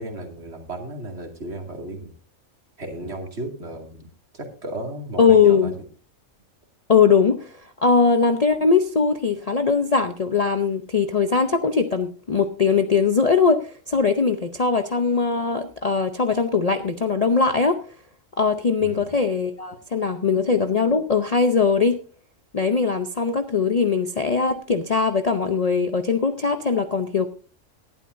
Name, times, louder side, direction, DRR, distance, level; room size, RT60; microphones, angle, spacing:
voice 1, 0.0-2.1 2.8-5.8 18.8-19.1, right 1 dB, 55° right, 2 dB, 2.7 m, -34 dB
voice 2, 5.2-5.7 6.9-17.8 18.4-22.0 22.5-27.3, left 5 dB, 40° left, 7 dB, 0.6 m, -20 dB
18.0 x 11.5 x 2.6 m, 0.37 s
omnidirectional pair, 1.4 m